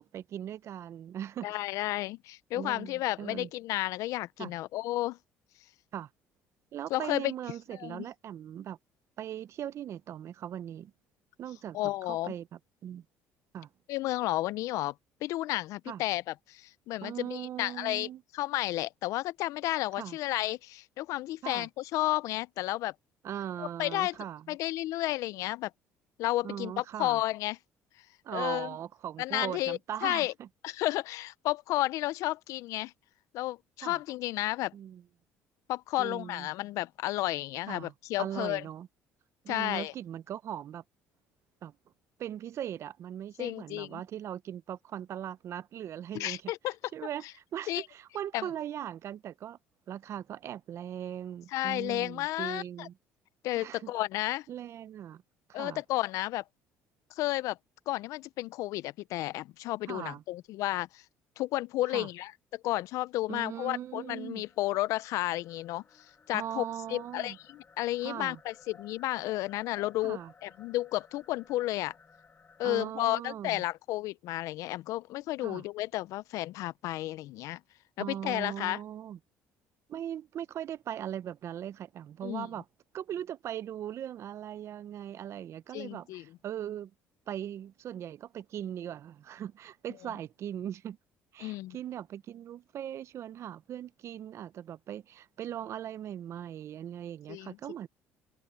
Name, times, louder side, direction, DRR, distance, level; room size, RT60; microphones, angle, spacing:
voice 1, 0.0-1.6 2.5-3.5 4.4-4.5 5.9-6.1 6.7-8.8 9.2-10.9 11.4-13.0 13.5-13.7 15.9-16.0 17.0-18.2 20.0-20.2 21.4-21.7 23.2-24.6 26.4-27.2 28.2-30.5 33.8-34.0 34.7-35.0 36.0-36.5 37.7-37.9 38.2-38.9 39.4-40.8 41.6-41.7 42.2-46.4 46.9-47.2 47.5-49.6 49.9-52.9 53.6-53.9 54.5-55.2 55.5-55.8 59.9-60.2 61.9-62.1 63.3-64.4 66.3-67.4 68.0-68.4 70.0-70.3 72.6-73.6 75.4-75.6 78.0-79.2 79.9-82.6 82.9-86.9 87.3-91.0 91.3-97.9, right 10 dB, 55° right, 0.7 m, -39 dB
voice 2, 1.4-5.2 6.9-7.3 7.7-8.1 11.7-12.3 13.9-14.9 15.2-22.9 23.6-24.2 24.5-25.7 26.2-27.6 28.3-28.7 29.2-30.3 30.6-32.9 33.3-34.7 35.7-38.6 39.5-39.9 43.4-44.0 46.1-46.8 47.7-47.8 48.3-48.5 51.5-52.9 53.4-54.5 55.5-56.4 57.2-57.6 57.9-61.0 61.4-65.8 66.3-66.6 66.9-71.9 72.6-77.6 78.0-78.8 82.2-82.5 85.7-86.2 91.4-91.8 97.3-97.6, left 17 dB, 75° left, 0.6 m, -32 dB
sound 1, 63.2-72.9, left 5 dB, 35° left, 4.6 m, -59 dB
supercardioid pair, 80°, 6 cm